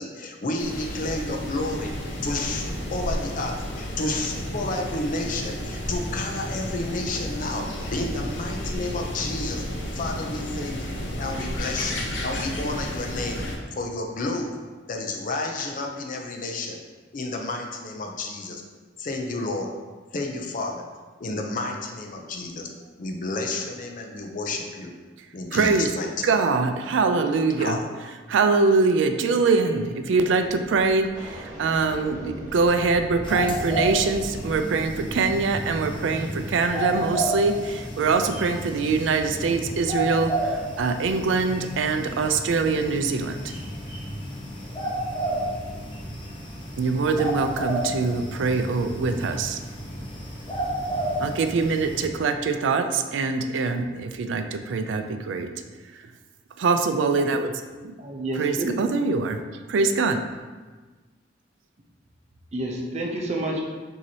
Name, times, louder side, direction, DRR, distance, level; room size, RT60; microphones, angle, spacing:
voice 1, 0.0-1.9 2.2-9.6 9.9-13.4 13.7-16.8 17.1-18.6 19.0-19.7 20.1-20.8 21.2-22.7 23.0-24.9 25.3-26.4 27.6-27.9, left 2 dB, 45° left, 2 dB, 0.5 m, -31 dB
sound 1, 0.6-13.6, equal, 80° left, 0.7 m, -32 dB
voice 2, 25.5-25.9 26.2-27.8 28.3-43.4 46.8-49.6 51.2-55.5 56.6-57.6 58.4-59.4 59.7-60.2, right 4 dB, 80° right, 7 dB, 0.4 m, -23 dB
sound 2, 29.6-29.8 30.1-36.3, equal, 15° right, 1.3 m, -41 dB
sound 3, 33.2-52.0, right 1 dB, 25° left, 0.8 m, -31 dB
voice 3, 58.0-58.9 62.5-63.6, right 1 dB, 35° right, 0 dB, 0.6 m, -29 dB
6.0 x 2.8 x 2.7 m, 1.3 s
head